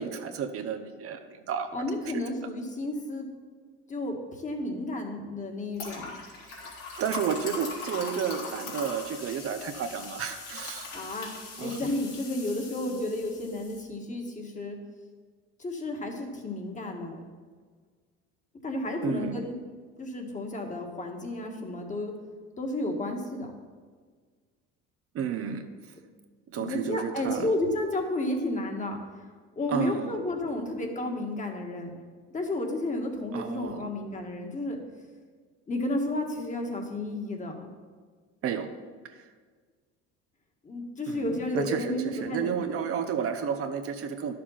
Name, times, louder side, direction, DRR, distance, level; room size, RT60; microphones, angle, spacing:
voice 1, 0.0-1.8 6.6-6.7 7.0-10.9 11.6-11.8 19.0-19.4 25.1-25.7 26.5-27.5 29.7-30.1 33.3-33.8 38.4-38.7 39.0-39.3 41.1-44.3, right 7 dB, 45° right, 7 dB, 0.9 m, -32 dB
voice 2, 1.7-3.3 3.9-6.1 10.9-11.3 11.6-14.8 15.6-17.2 18.6-19.6 20.0-22.1 22.6-23.5 26.5-29.0 29.6-31.9 32.3-34.8 35.7-37.7 40.6-42.8, left 1 dB, 25° left, 3 dB, 1.8 m, -32 dB
sound 1, 5.7-13.8, left 4 dB, 65° left, 3.6 m, -40 dB
11.0 x 6.8 x 5.8 m, 1.6 s
supercardioid pair, 105°, 30 cm